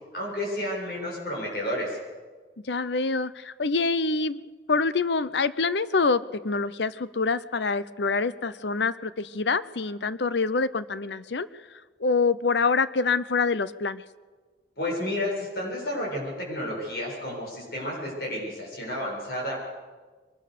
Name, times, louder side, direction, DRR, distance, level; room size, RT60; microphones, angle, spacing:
voice 1, 0.1-2.0 14.8-19.6, left 1 dB, 60° left, -2 dB, 7.4 m, -31 dB
voice 2, 2.7-11.5 12.0-14.0, left 4 dB, 75° left, 16 dB, 0.7 m, -26 dB
23.5 x 19.5 x 6.8 m, 1.4 s
head